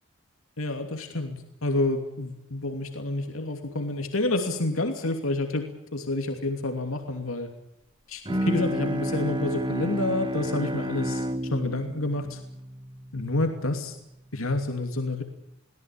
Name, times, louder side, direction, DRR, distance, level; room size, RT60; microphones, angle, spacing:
voice 1, 0.6-7.5 8.1-11.3 11.5-12.4 13.1-14.0 14.3-15.2, left 2 dB, 90° left, 5 dB, 2.8 m, -29 dB
Bowed string instrument, 8.2-13.7, equal, 25° right, 1.4 m, -31 dB
23.0 x 18.0 x 8.7 m, 0.82 s
head